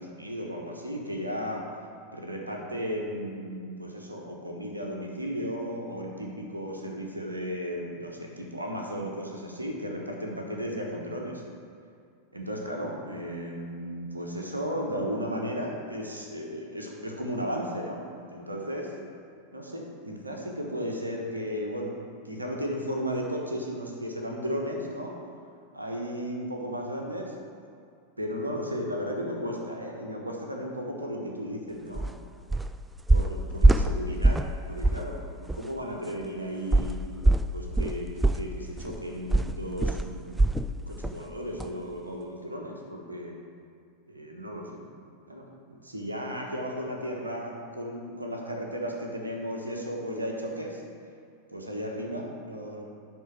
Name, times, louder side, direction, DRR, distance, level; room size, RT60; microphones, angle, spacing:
voice 1, 0.0-1.7 2.1-11.4 12.3-18.0 18.3-18.9 19.5-22.0 22.2-25.2 25.7-27.3 28.2-32.1 33.1-37.0 37.5-40.3 40.7-43.4 44.1-44.8 45.3-50.8 51.5-52.8, equal, 80° right, 0 dB, 1.3 m, -35 dB
sound 1, 31.9-32.1 32.5-32.7 33.1-34.5 34.8-35.1 35.5-35.6 36.7-40.7 41.0-41.2 41.6-41.7, right 2 dB, 10° right, 0.3 m, -23 dB
10.5 x 3.9 x 6.1 m, 2.3 s
figure-of-eight pair, 90°, 0 cm